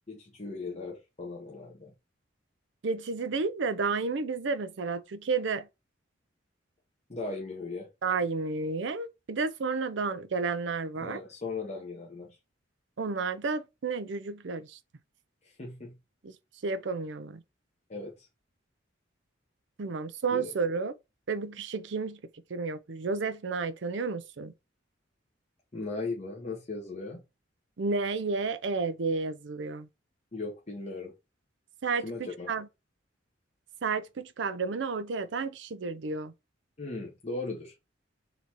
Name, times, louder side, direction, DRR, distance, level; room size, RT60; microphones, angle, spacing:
voice 1, 0.1-1.9 7.1-7.9 10.9-12.4 15.4-16.0 17.9-18.3 20.3-20.5 25.7-27.2 30.3-31.1 32.0-32.5 36.8-37.7, left 3 dB, 35° left, 0.9 m, -38 dB
voice 2, 2.8-5.7 8.0-11.2 13.0-14.8 16.2-16.3 16.6-17.4 19.8-20.9 21.3-22.2 22.5-24.5 27.8-29.9 31.8-32.7 33.8-36.3, right 4 dB, 70° right, 0.5 m, -31 dB
3.9 x 2.8 x 4.5 m
head